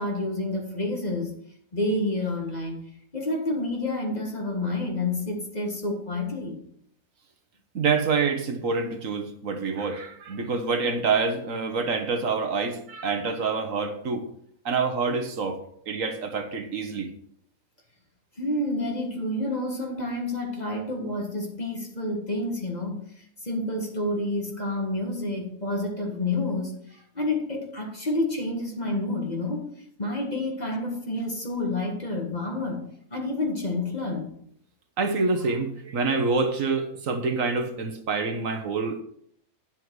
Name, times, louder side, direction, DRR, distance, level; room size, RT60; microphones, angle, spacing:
voice 1, 0.0-1.3 1.7-2.8 3.1-6.6 18.4-29.7 30.0-34.4, left 2 dB, 30° left, 1 dB, 1.7 m, -29 dB
voice 2, 7.7-14.2 14.6-15.6 15.9-17.1 35.0-39.0, right 4 dB, 65° right, 6 dB, 1.4 m, -26 dB
9.7 x 7.6 x 4.7 m, 0.67 s
omnidirectional pair, 1.5 m